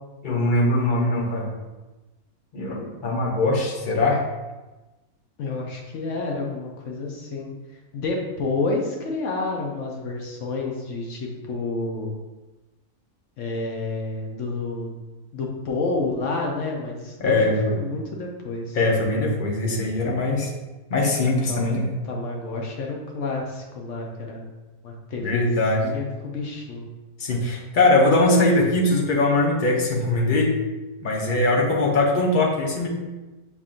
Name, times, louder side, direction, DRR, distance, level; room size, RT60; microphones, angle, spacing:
voice 1, 0.2-1.5 2.5-4.2 17.2-17.7 18.7-20.5 20.9-21.9 25.2-25.9 27.2-30.5 31.0-32.9, left 2 dB, 40° left, -2 dB, 0.8 m, -21 dB
voice 2, 5.4-7.5 7.9-12.1 13.4-14.9 15.3-18.8 21.5-24.5 24.8-26.9, left 3 dB, 60° left, 0 dB, 1.0 m, -29 dB
5.9 x 3.5 x 2.5 m, 1.1 s
omnidirectional pair, 1.5 m